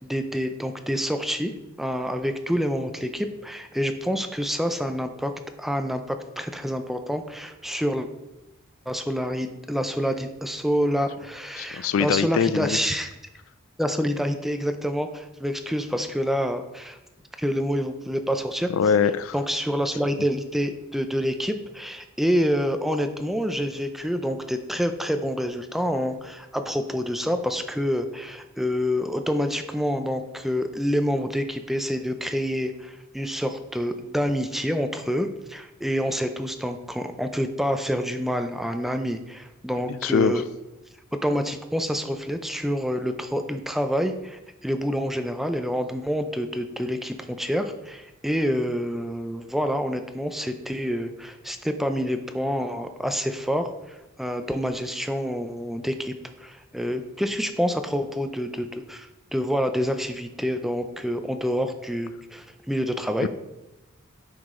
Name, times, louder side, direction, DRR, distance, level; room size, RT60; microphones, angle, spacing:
voice 1, 0.0-1.5 1.8-5.3 5.6-8.1 8.9-13.1 13.8-17.0 17.4-18.7 19.3-40.4 41.2-53.7 54.2-56.1 56.4-63.3, equal, ahead, 7 dB, 0.5 m, -27 dB
voice 2, 11.6-12.8 18.7-19.3 39.9-40.3 63.2-63.3, left 6 dB, 75° left, 14 dB, 0.3 m, -23 dB
9.3 x 5.0 x 3.7 m, 0.97 s
head